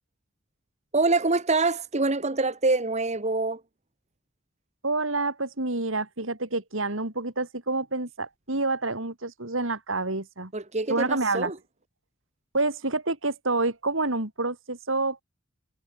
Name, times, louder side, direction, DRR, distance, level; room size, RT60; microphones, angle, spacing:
voice 1, 0.9-3.6 10.5-11.5, right 3 dB, 35° right, 1.7 m, -25 dB
voice 2, 4.8-10.5 10.9-11.5 12.5-15.2, right 3 dB, 70° right, 3.7 m, -28 dB
head